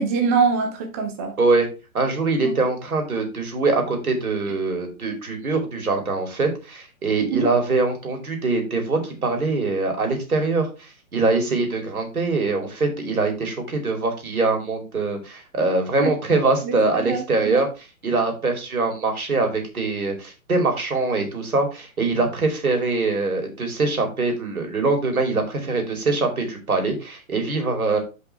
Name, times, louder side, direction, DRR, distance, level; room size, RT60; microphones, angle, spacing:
voice 1, 0.0-1.3 7.3-7.5 16.0-16.1 16.6-16.7 17.1-17.6, right 4 dB, 10° right, 0.4 m, -23 dB
voice 2, 1.4-1.7 1.9-17.7 18.0-28.0, right 3 dB, 75° right, 2.8 m, -23 dB
6.6 x 5.3 x 4.2 m
figure-of-eight pair, 130°, 43 cm